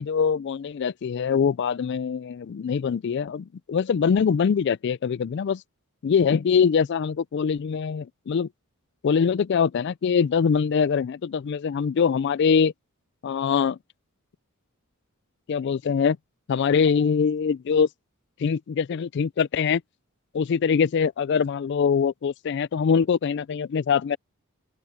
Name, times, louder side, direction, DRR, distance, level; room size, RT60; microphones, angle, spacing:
voice 1, 0.0-5.6 6.0-8.5 9.0-12.7 13.2-13.8 15.5-16.2 16.5-17.9 18.4-19.8 20.3-24.2, left 6 dB, 50° left, 0.3 m, -23 dB
open air
head